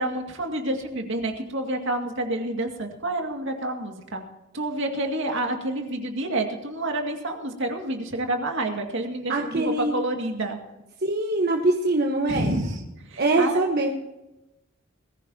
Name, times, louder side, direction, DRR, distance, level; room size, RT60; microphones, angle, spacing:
voice 1, 0.0-4.2 4.5-10.6 12.3-12.8 13.1-13.6, right 1 dB, 65° right, 3 dB, 2.2 m, -28 dB
voice 2, 9.3-9.9 11.0-12.5 13.2-13.9, right 2 dB, 50° right, 2 dB, 1.3 m, -23 dB
20.5 x 15.0 x 2.9 m, 0.98 s
head